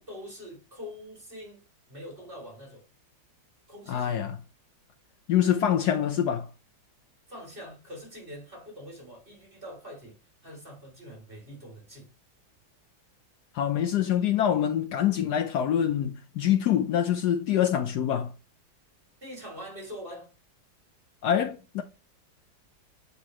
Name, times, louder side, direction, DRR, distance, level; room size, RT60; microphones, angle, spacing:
voice 1, 0.0-1.6 1.9-2.8 3.7-4.2 7.3-10.2 10.4-12.1 19.2-20.3, equal, 30° right, 3.0 m, -44 dB
voice 2, 3.9-4.4 5.3-6.5 13.5-18.3 21.2-21.8, left 10 dB, 70° left, 1.1 m, -25 dB
8.2 x 4.1 x 2.9 m
omnidirectional pair, 2.0 m